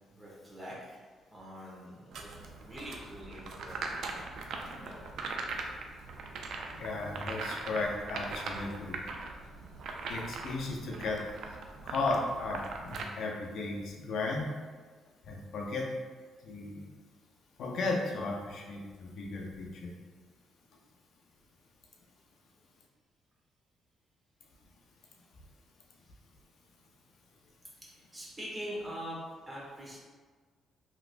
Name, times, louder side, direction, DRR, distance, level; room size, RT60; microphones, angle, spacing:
voice 1, 0.2-1.0 1.3-4.2 4.5-5.0 27.9-30.0, equal, 15° right, -6 dB, 1.2 m, -44 dB
sound 1, 2.1-13.0, right 3 dB, 70° right, 0.4 m, -40 dB
voice 2, 6.7-9.0 10.1-11.2 11.8-14.5 15.3-15.9 16.4-16.8 17.6-19.9, left 3 dB, 70° left, -1 dB, 0.5 m, -35 dB
3.2 x 2.9 x 2.5 m, 1.5 s
cardioid pair, 90°, 0 cm